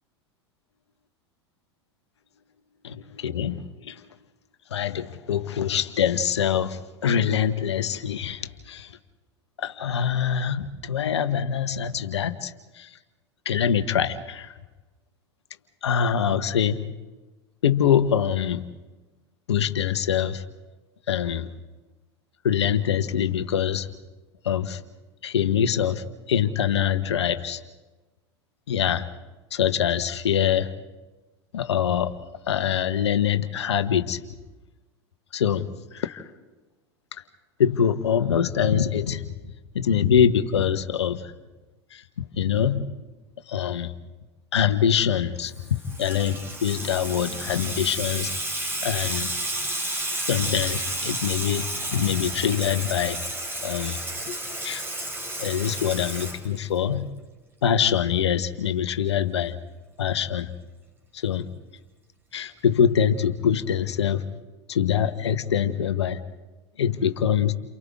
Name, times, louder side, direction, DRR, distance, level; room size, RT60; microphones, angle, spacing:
voice 1, 2.8-4.1 4.7-9.0 9.6-13.0 13.4-14.5 15.8-16.8 17.6-18.7 19.5-20.4 21.1-21.5 22.4-23.9 24.4-24.8 25.2-27.6 28.7-29.1 29.5-30.7 31.5-32.1 32.4-34.2 35.3-36.3 37.6-39.2 39.7-41.3 41.9-43.0 43.5-43.9 44.5-48.3 48.8-49.3 50.3-53.2 53.6-54.0 54.6-54.8 55.4-57.1 57.6-59.6 60.0-60.5 61.1-61.5 62.3-64.3 64.7-66.2 66.8-67.5, left 8 dB, 70° left, 10 dB, 1.3 m, -24 dB
Water tap faucet / Sink (filling or washing), 45.5-57.0, right 1 dB, 15° right, 3.1 m, -31 dB
29.5 x 28.0 x 3.6 m, 1.2 s
figure-of-eight pair, 90°, 15 cm